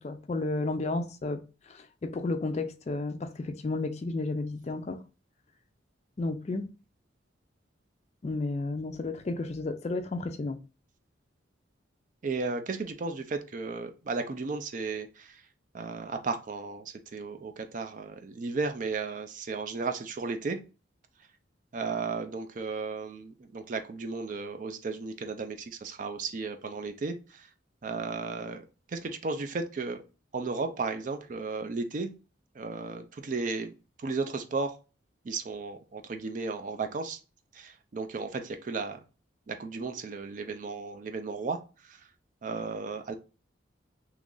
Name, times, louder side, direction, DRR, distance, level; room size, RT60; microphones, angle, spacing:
voice 1, 0.0-5.0 6.2-6.7 8.2-10.6, left 2 dB, 35° left, 0.4 m, -32 dB
voice 2, 12.2-15.4 15.7-20.6 21.7-27.5 27.8-30.0 30.3-32.1 32.5-33.7 34.0-34.8 35.2-37.2 37.5-39.0 39.5-42.1 42.4-43.1, right 4 dB, 40° right, 0.4 m, -34 dB
3.0 x 2.4 x 3.7 m
head